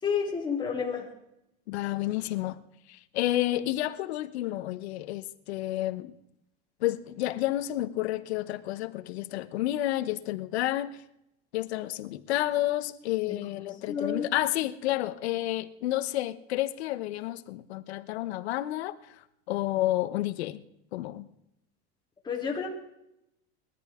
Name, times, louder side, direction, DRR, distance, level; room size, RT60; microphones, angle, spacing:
voice 1, 0.0-1.1 13.3-13.4 13.9-14.3 22.2-22.7, left 6 dB, 15° left, -1 dB, 3.4 m, -30 dB
voice 2, 1.7-2.6 2.9-6.1 6.8-11.0 11.5-19.0 19.5-20.6 20.9-21.3, left 15 dB, 85° left, 12 dB, 1.1 m, -30 dB
21.0 x 13.5 x 3.7 m, 0.83 s
supercardioid pair, 155°, 31 cm